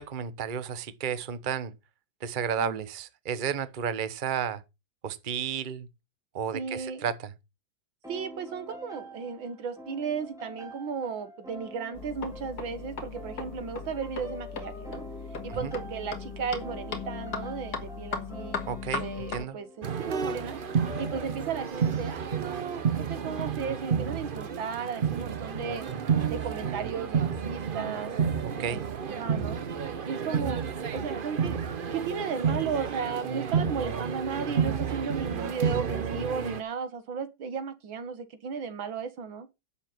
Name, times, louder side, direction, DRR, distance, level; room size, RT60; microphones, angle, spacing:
voice 1, 0.0-1.7 2.2-4.6 5.0-5.9 6.3-7.1 15.5-15.7 18.7-19.6 25.9-26.1 28.6-28.8, right 7 dB, 35° right, 1.0 m, -32 dB
voice 2, 6.5-7.1 8.1-15.0 15.4-18.6 19.0-20.6 21.0-25.9 26.3-28.8 29.1-29.6 30.0-30.6 30.9-39.5, right 6 dB, 85° right, 2.3 m, -35 dB
sound 1, 8.0-21.7, equal, ahead, 4.0 m, -46 dB
sound 2, 11.9-19.4, left 5 dB, 55° left, 2.4 m, -38 dB
sound 3, 19.8-36.6, right 6 dB, 50° right, 0.6 m, -30 dB
10.5 x 7.5 x 5.8 m
omnidirectional pair, 2.1 m